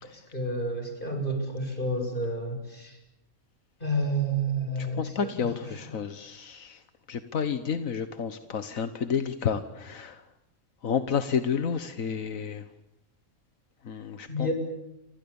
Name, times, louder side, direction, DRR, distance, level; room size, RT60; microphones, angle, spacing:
voice 1, 0.1-3.0 3.8-5.7 14.3-14.5, right 1 dB, 40° left, 4 dB, 7.4 m, -30 dB
voice 2, 4.8-6.8 7.1-10.2 10.8-12.6 13.8-14.5, left 7 dB, 85° left, 11 dB, 1.7 m, -30 dB
30.0 x 26.0 x 7.1 m, 0.88 s
omnidirectional pair, 1.4 m